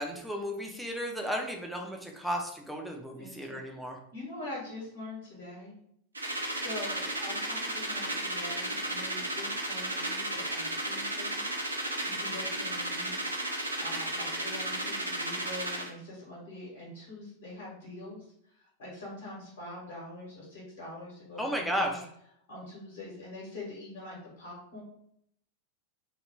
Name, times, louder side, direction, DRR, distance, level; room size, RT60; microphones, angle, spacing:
voice 1, 0.0-4.0 21.4-22.0, equal, ahead, 1 dB, 0.4 m, -34 dB
voice 2, 3.2-3.8 4.1-5.8 6.5-11.5 12.0-13.4 13.8-18.3 18.5-22.0 22.5-24.8, left 1 dB, 55° left, -5 dB, 0.9 m, -44 dB
sound 1, 6.1-15.9, right 1 dB, 80° right, 0.4 m, -34 dB
2.1 x 2.1 x 3.1 m, 0.72 s
figure-of-eight pair, 90°, 0 cm